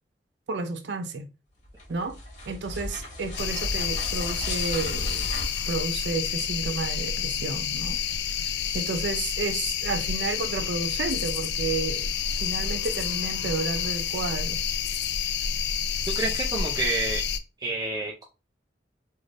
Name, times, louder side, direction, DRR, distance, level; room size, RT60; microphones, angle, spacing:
voice 1, 0.5-1.3 1.9-2.2 2.5-5.3 5.7-8.0 8.7-12.1 12.4-14.6, right 3 dB, 80° right, 0.5 m, -31 dB
sound 1, 1.6-6.6, left 1 dB, 45° left, 1.5 m, -37 dB
sound 2, 3.4-17.4, left 7 dB, 75° left, 0.3 m, -29 dB
voice 2, 16.1-17.2 17.6-18.2, right 3 dB, 20° right, 0.5 m, -29 dB
3.3 x 2.6 x 2.5 m
head